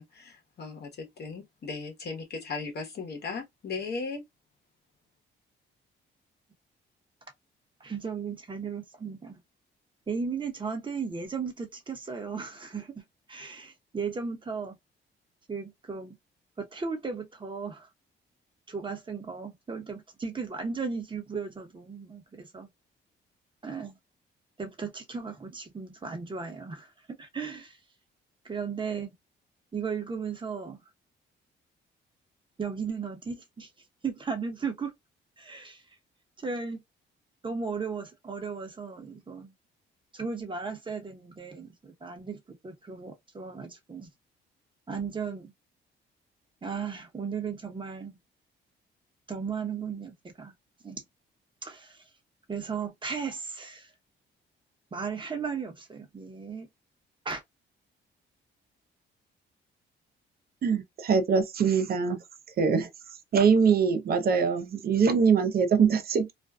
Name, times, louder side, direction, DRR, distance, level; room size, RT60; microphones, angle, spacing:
voice 1, 0.0-4.2, left 4 dB, 55° left, 1.0 m, -37 dB
voice 2, 7.8-9.4 10.1-13.0 13.3-14.8 15.5-16.2 16.6-17.9 18.7-22.7 23.6-24.0 24.6-27.8 28.4-29.1 29.7-30.8 32.6-33.7 34.0-34.9 35.4-35.8 36.4-36.8 37.4-39.5 40.1-44.1 44.9-45.5 46.6-48.2 49.3-50.5 50.8-51.0 51.6-52.0 52.5-53.9 54.9-56.7 57.2-57.4, right 5 dB, 25° right, 0.9 m, -36 dB
voice 3, 60.6-62.2 62.6-62.9 63.3-66.3, right 6 dB, 50° right, 0.7 m, -23 dB
2.5 x 2.2 x 2.3 m
cardioid pair, 90°, 20 cm